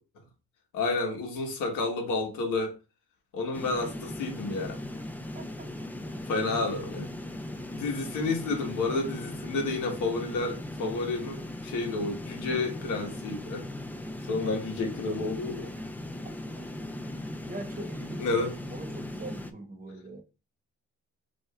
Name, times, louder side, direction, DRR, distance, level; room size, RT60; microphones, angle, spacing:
voice 1, 0.7-2.8 3.3-4.8 6.2-7.1 7.7-13.6 14.3-15.7 18.2-18.5, left 3 dB, 85° left, 1.3 m, -30 dB
sound 1, 3.5-19.5, left 1 dB, 5° left, 0.4 m, -38 dB
voice 2, 5.3-5.7 14.3-14.6 15.8-15.9 16.5-16.9 17.2-18.4 18.7-20.2, right 2 dB, 30° right, 1.0 m, -43 dB
6.2 x 2.8 x 2.4 m
cardioid pair, 90°, 30 cm